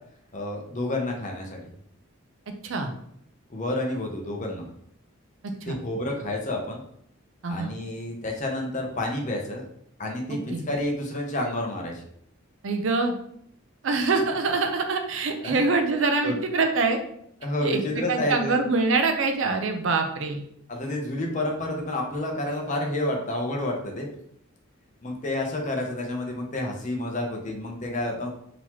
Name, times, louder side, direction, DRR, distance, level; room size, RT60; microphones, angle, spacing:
voice 1, 0.3-1.7 3.5-4.7 5.7-6.8 7.5-9.7 10.0-12.0 15.4-15.6 16.2-16.4 17.4-18.6 20.7-24.1 25.0-28.3, left 1 dB, 35° left, 1 dB, 0.7 m, -29 dB
voice 2, 10.3-10.7 12.6-13.1 13.8-17.0 17.6-20.4, right 3 dB, 65° right, 6 dB, 0.4 m, -25 dB
3.8 x 2.9 x 3.0 m, 0.70 s
head